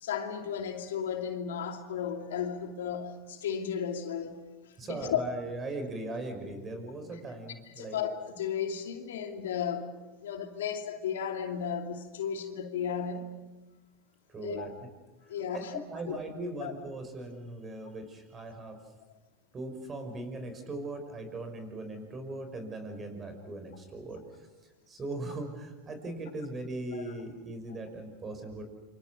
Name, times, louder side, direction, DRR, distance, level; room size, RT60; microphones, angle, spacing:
voice 1, 0.0-4.4 4.9-5.2 7.7-9.9 10.2-13.3 14.4-14.7 15.3-15.8 16.1-16.2 16.6-16.7 26.9-27.2, left 8 dB, 80° left, 2.5 m, -34 dB
voice 2, 4.8-8.0 14.3-14.9 15.5-18.8 19.5-24.5 24.9-28.6, right 2 dB, 25° right, 5.9 m, -39 dB
27.5 x 26.0 x 6.4 m
hypercardioid pair, 100°, 0 cm